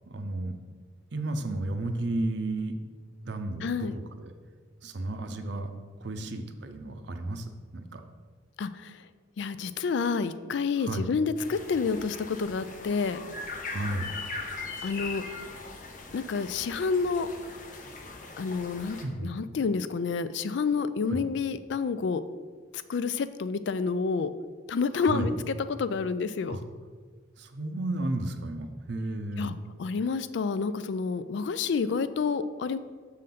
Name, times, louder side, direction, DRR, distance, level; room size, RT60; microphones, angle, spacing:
voice 1, 0.1-0.5 1.1-2.8 3.2-4.3 4.8-5.7 6.0-8.0 10.8-11.1 13.7-14.1 19.0-19.3 21.1-21.2 24.9-25.3 26.5-26.6 27.4-29.6, right 2 dB, 60° right, 7 dB, 0.6 m, -33 dB
voice 2, 3.6-4.0 8.6-8.9 9.4-13.2 14.8-15.2 16.1-17.3 18.4-19.0 19.2-22.2 22.9-24.3 24.7-26.6 29.4-32.8, left 5 dB, 60° left, 13 dB, 0.3 m, -29 dB
sound 1, 11.4-19.0, left 3 dB, 40° left, 0.7 m, -40 dB
6.4 x 3.8 x 5.8 m, 1.5 s
head